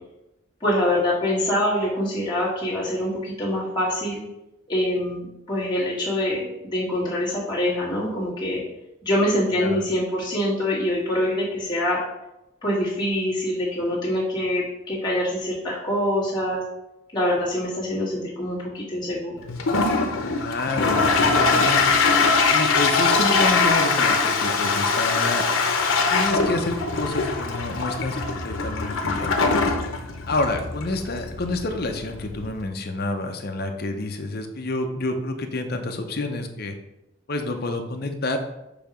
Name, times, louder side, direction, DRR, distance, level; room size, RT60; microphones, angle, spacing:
voice 1, 0.6-4.2 4.7-5.2 5.5-8.6 9.0-12.0 12.6-16.7 17.1-19.3, left 1 dB, 20° left, -8 dB, 2.2 m, -24 dB
Toilet flush, 19.5-32.6, left 4 dB, 85° left, 0.7 m, -22 dB
voice 2, 20.4-21.9 22.5-25.4 26.1-29.7 30.3-36.7 37.3-38.4, left 2 dB, 50° left, 5 dB, 0.6 m, -28 dB
6.8 x 2.8 x 5.1 m, 0.91 s
head